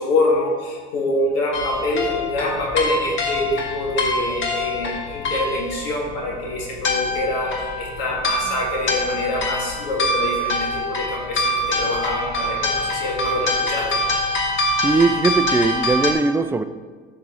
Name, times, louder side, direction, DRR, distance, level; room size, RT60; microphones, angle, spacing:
voice 1, 0.0-14.0, left 2 dB, 75° left, -2 dB, 1.9 m, -25 dB
sound 1, 1.5-16.1, left 1 dB, 35° left, 1.6 m, -25 dB
voice 2, 14.8-16.6, right 3 dB, 10° right, 10 dB, 0.3 m, -19 dB
10.5 x 7.4 x 3.0 m, 1.5 s
hypercardioid pair, 80°, 33 cm